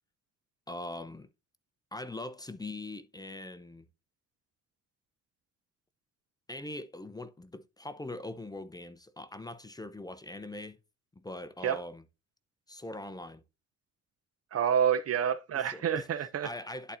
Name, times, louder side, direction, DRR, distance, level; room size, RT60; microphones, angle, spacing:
voice 1, 0.7-1.3 1.9-3.9 6.5-10.8 11.2-12.0 12.7-13.4 15.7-16.1 16.4-17.0, left 2 dB, 15° left, 0.7 m, -42 dB
voice 2, 14.5-16.5, right 8 dB, 50° right, 0.8 m, -28 dB
11.0 x 4.4 x 2.7 m
cardioid pair, 90°, 30 cm